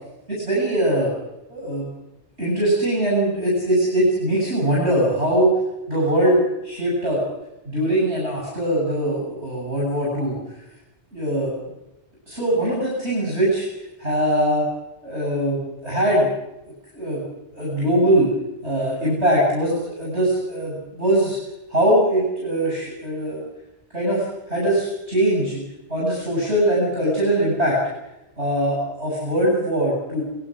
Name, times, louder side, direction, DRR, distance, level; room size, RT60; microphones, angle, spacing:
voice 1, 0.3-1.1 1.5-1.9 2.4-5.5 5.9-7.2 7.7-10.4 11.1-11.5 12.3-13.7 14.0-14.6 15.0-16.3 16.9-17.2 17.5-18.3 18.6-21.4 21.7-23.4 23.9-25.6 25.9-27.8 28.4-30.2, right 1 dB, 70° right, -4 dB, 7.7 m, -21 dB
24.0 x 21.0 x 6.4 m, 0.95 s
omnidirectional pair, 1.2 m